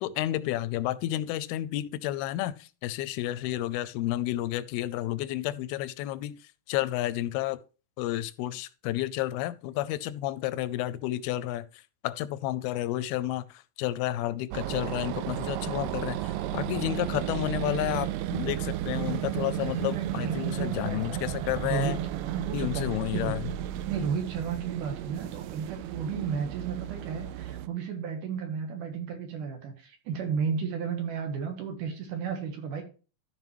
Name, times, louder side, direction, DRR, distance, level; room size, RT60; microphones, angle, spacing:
voice 1, 0.0-6.3 6.7-7.6 8.0-22.0 22.5-23.5, left 14 dB, 90° left, 2.5 m, -31 dB
sound 1, 14.5-27.7, right 13 dB, 90° right, 1.9 m, -33 dB
voice 2, 19.6-21.9 22.3-23.3 23.9-32.8, right 6 dB, 65° right, 2.6 m, -33 dB
13.5 x 5.4 x 3.1 m
omnidirectional pair, 4.4 m